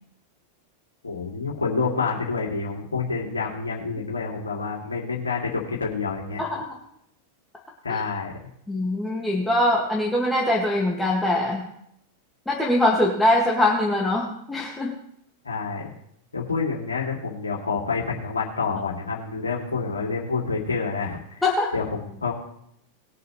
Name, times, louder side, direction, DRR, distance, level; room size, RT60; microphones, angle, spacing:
voice 1, 1.0-6.4 7.8-8.3 15.4-15.9 16.3-21.4 21.7-22.3, left 4 dB, 75° left, -3 dB, 2.7 m, -28 dB
voice 2, 8.7-11.6 12.5-14.9 21.4-21.7, left 1 dB, 5° left, -3 dB, 2.0 m, -22 dB
20.5 x 7.8 x 3.2 m, 0.74 s
figure-of-eight pair, 90°, 0 cm